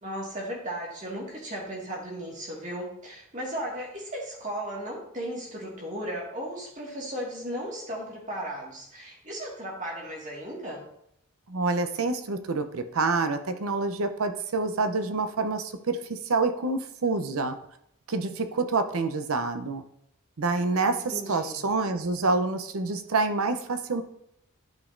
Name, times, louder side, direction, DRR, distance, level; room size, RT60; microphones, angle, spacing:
voice 1, 0.0-10.8 20.8-21.6, equal, 35° right, -2 dB, 1.8 m, -36 dB
voice 2, 11.5-17.6 18.1-19.8 20.4-24.0, right 3 dB, 85° right, 9 dB, 0.7 m, -27 dB
11.5 x 5.1 x 2.5 m, 0.75 s
head